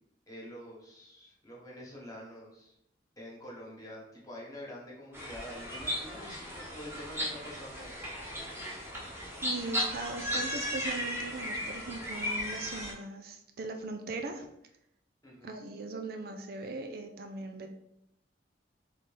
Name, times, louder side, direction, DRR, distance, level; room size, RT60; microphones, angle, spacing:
voice 1, 0.3-2.7 3.2-8.7 15.2-15.6, left 1 dB, 20° left, -3 dB, 1.4 m, -47 dB
sound 1, 5.1-12.9, equal, 15° right, 1.2 m, -36 dB
voice 2, 9.4-14.5 15.4-17.7, right 3 dB, 60° right, 5 dB, 0.5 m, -39 dB
3.7 x 3.3 x 4.1 m, 0.78 s
head